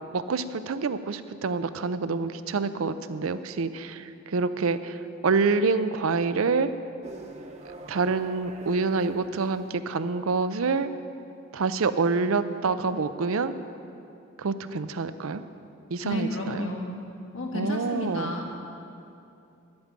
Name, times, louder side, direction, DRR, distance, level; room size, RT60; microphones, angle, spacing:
voice 1, 0.1-6.7 7.7-10.9 11.5-13.5 14.4-15.4 15.9-16.7 17.5-18.3, right 4 dB, 80° right, 12 dB, 0.5 m, -27 dB
sound 1, 7.0-9.9, right 2 dB, 30° right, 0.8 m, -45 dB
voice 2, 16.0-16.9 17.3-18.5, left 1 dB, 70° left, 0 dB, 1.7 m, -31 dB
10.5 x 8.7 x 7.4 m, 2.7 s
head